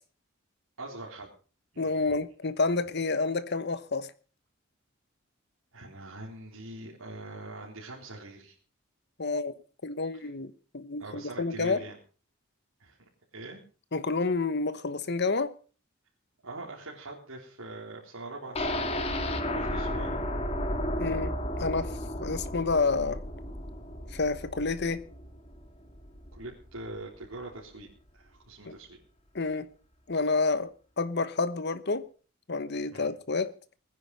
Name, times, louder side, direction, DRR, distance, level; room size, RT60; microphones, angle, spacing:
voice 1, 0.8-1.3 1.7-1.8 5.7-8.6 11.0-12.0 12.8-13.0 13.3-13.6 16.4-18.9 19.5-20.1 26.3-27.9 28.1-28.9 32.9-33.1, right 2 dB, 85° right, 3.9 m, -42 dB
voice 2, 1.8-4.1 9.2-9.5 9.8-11.8 13.9-15.5 21.0-23.2 24.1-25.0 28.6-28.8 29.3-29.7 30.1-32.1 32.5-33.5, left 3 dB, 50° left, 1.1 m, -29 dB
sound 1, 18.6-26.4 26.8-26.9 27.2-27.3, left 1 dB, 30° left, 2.2 m, -33 dB
20.5 x 10.0 x 5.4 m
head